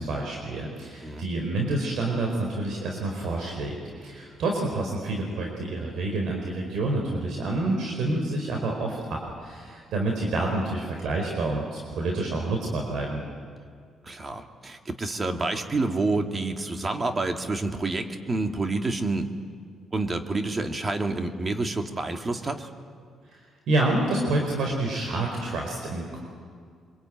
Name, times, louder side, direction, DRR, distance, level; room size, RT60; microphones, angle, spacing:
voice 1, 0.0-13.2 23.3-23.4 23.7-26.2, right 2 dB, 75° right, 0 dB, 4.5 m, -28 dB
voice 2, 14.0-19.3 19.9-22.7, right 2 dB, 30° right, 5 dB, 2.4 m, -28 dB
25.0 x 22.5 x 9.3 m, 2.1 s
cardioid pair, 90°, 0 cm